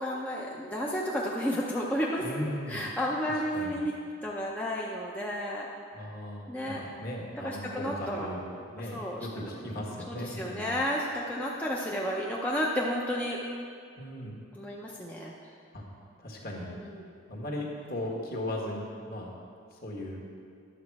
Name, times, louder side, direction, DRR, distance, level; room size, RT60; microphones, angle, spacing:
voice 1, 0.0-2.3 2.7-3.9 4.2-5.7 6.5-6.8 7.4-8.3 8.8-9.3 10.1-13.4 14.5-15.3 16.8-17.1, equal, 5° left, -4 dB, 0.6 m, -32 dB
voice 2, 2.2-2.9 3.5-3.8 5.9-10.8 14.0-14.4 15.7-15.8 16.2-16.8 17.3-19.3 19.7-20.2, left 1 dB, 45° left, -2 dB, 1.6 m, -37 dB
11.0 x 7.4 x 4.7 m, 2.3 s
head